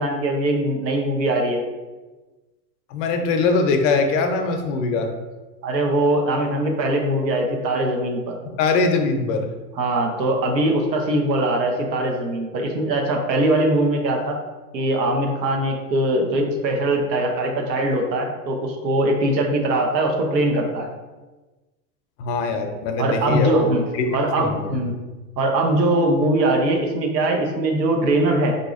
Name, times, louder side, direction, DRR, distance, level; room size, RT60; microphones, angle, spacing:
voice 1, 0.0-1.6 5.6-8.4 9.7-14.4 14.7-20.9 23.0-23.8 24.1-24.9 25.4-28.6, right 1 dB, 90° right, 2 dB, 0.8 m, -21 dB
voice 2, 2.9-5.1 8.6-9.5 22.2-24.1 24.4-24.8, left 4 dB, 50° left, 5 dB, 0.6 m, -22 dB
3.8 x 2.7 x 2.4 m, 1.2 s
hypercardioid pair, 105°, 49 cm